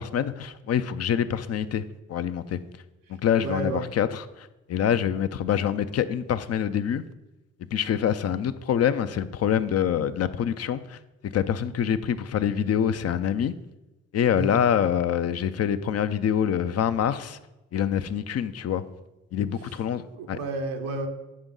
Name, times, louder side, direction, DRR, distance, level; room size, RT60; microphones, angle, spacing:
voice 1, 0.0-1.8 2.1-2.6 3.1-7.0 7.7-13.5 14.1-17.4 17.7-18.8 19.3-20.4, left 9 dB, 45° left, 0.5 m, -26 dB
voice 2, 3.4-3.8 14.4-14.5 20.1-21.1, right 3 dB, 80° right, 1.0 m, -31 dB
8.6 x 5.2 x 3.8 m
hypercardioid pair, 45°, 34 cm